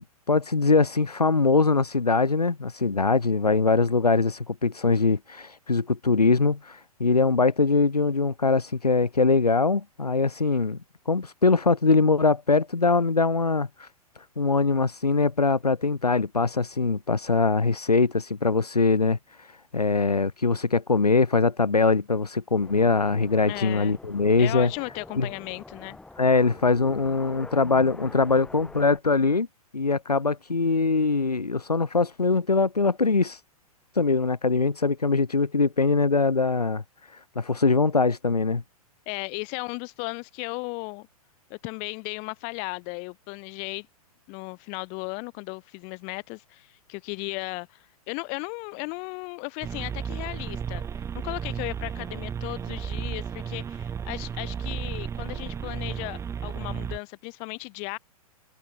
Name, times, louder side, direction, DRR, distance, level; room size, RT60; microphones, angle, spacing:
voice 1, 0.0-10.8 11.1-13.9 14.4-19.5 19.7-24.7 25.1-25.3 26.2-29.5 29.7-33.4 34.0-36.8 37.1-38.6, left 4 dB, 90° left, 0.8 m, -22 dB
sound 1, 22.6-29.0, left 2 dB, 5° left, 0.8 m, -46 dB
voice 2, 23.4-23.9 24.4-26.0 39.1-41.1 41.5-43.9 44.3-47.8 48.1-50.8 51.2-58.0, left 36 dB, 35° left, 2.3 m, -36 dB
sound 2, 49.6-57.0, right 7 dB, 15° right, 1.2 m, -33 dB
figure-of-eight pair, 110°, 19 cm